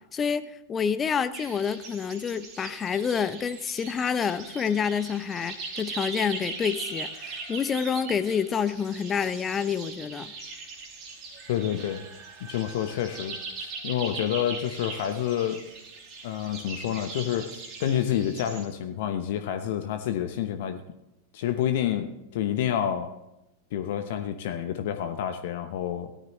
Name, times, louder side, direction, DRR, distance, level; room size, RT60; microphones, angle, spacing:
voice 1, 0.0-10.3, left 7 dB, 20° left, 12 dB, 0.7 m, -28 dB
sound 1, 1.3-18.6, right 4 dB, 35° right, 2.8 m, -40 dB
voice 2, 11.5-12.0 12.4-15.6 16.2-17.5 17.8-20.8 21.3-23.1 23.7-26.1, left 10 dB, 55° left, 9 dB, 0.9 m, -28 dB
17.5 x 13.0 x 3.1 m, 0.89 s
figure-of-eight pair, 90°, 0 cm